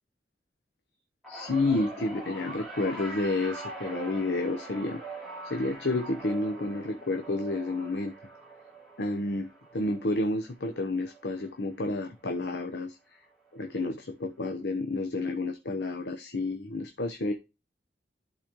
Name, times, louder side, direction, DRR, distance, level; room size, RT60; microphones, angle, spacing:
sound 1, 1.2-11.7 12.0-12.4 13.6-13.7, right 2 dB, ahead, 3.1 m, -43 dB
voice 1, 1.3-5.0 5.4-8.1 9.0-13.0 13.5-17.3, left 2 dB, 70° left, 5 dB, 0.9 m, -30 dB
12.5 x 4.1 x 3.0 m, 0.26 s
head